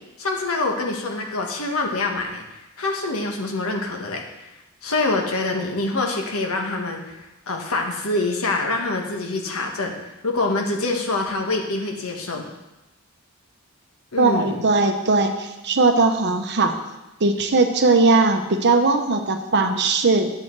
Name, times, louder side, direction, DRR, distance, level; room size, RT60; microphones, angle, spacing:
voice 1, 0.2-2.4 2.8-4.5 4.8-9.9 10.2-12.4 14.1-14.6, left 2 dB, 70° left, 1 dB, 1.6 m, -25 dB
voice 2, 14.2-16.8 17.2-20.3, right 3 dB, 50° right, 6 dB, 0.9 m, -19 dB
10.5 x 7.7 x 4.7 m, 0.99 s
head